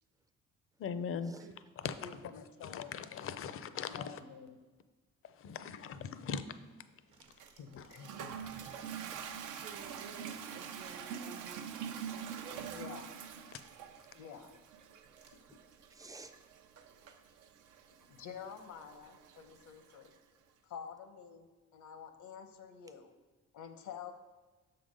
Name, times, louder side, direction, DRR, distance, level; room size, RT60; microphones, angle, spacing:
voice 1, 0.8-1.3 1.8-2.2 2.6-4.2 5.2-6.4 6.8-6.9 7.8-7.9 13.5-13.6, left 7 dB, 45° left, 0.5 m, -40 dB
voice 2, 2.0-4.6 7.5-8.5 12.7-13.1 14.1-14.5 15.3-15.4 18.1-20.1 20.6-21.5 21.7-23.1 23.5-24.1, left 7 dB, 75° left, 0.8 m, -49 dB
sound 1, 6.8-14.0 14.6-14.7 15.1-15.3, right 5 dB, 70° right, 1.1 m, -64 dB
Toilet flush, 7.4-20.2, right 7 dB, 85° right, 0.6 m, -46 dB
voice 3, 9.6-13.1 16.8-17.2, right 5 dB, 50° right, 0.7 m, -53 dB
voice 4, 15.0-15.3 15.9-16.6, right 3 dB, 10° right, 0.4 m, -56 dB
6.9 x 3.9 x 5.0 m
cardioid pair, 90°, 30 cm